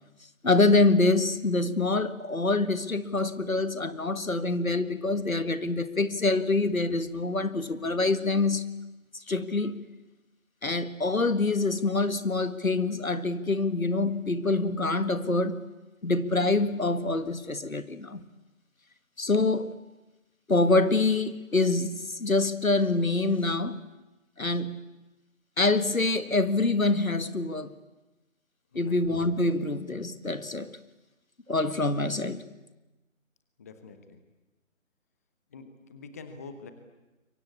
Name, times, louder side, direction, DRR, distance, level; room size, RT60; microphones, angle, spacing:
voice 1, 0.4-8.7 9.3-9.8 10.6-15.5 16.0-18.2 19.2-19.7 20.5-23.8 24.4-24.8 25.6-27.7 28.8-30.8 31.5-32.4, left 2 dB, 85° left, 2.0 m, -25 dB
voice 2, 33.6-34.2 35.5-36.7, left 4 dB, 10° left, 0.9 m, -45 dB
27.5 x 23.5 x 8.6 m
figure-of-eight pair, 150°, 40 cm